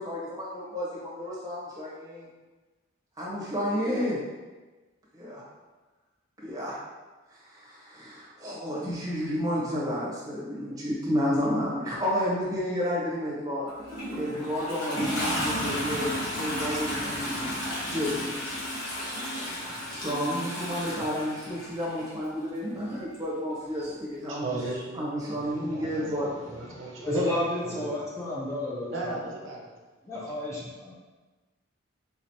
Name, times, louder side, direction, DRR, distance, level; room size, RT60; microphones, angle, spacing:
voice 1, 0.0-2.3 3.2-4.2 5.1-5.4 6.4-6.8 7.4-13.7 14.1-16.1 16.4-17.5 17.9-18.3 19.0-24.5 24.9-26.5, equal, 15° right, -7 dB, 0.9 m, -31 dB
Toilet flush, 13.7-22.1 23.1-23.2, equal, 80° left, 1.2 m, -33 dB
voice 2, 24.3-25.4 25.7-28.0 28.9-29.7 30.1-30.2, right 2 dB, 70° right, -2 dB, 0.7 m, -38 dB
voice 3, 25.3-26.1 26.6-29.1 30.0-30.9, left 1 dB, 15° left, -7 dB, 0.7 m, -33 dB
3.9 x 3.1 x 2.8 m, 1.2 s
head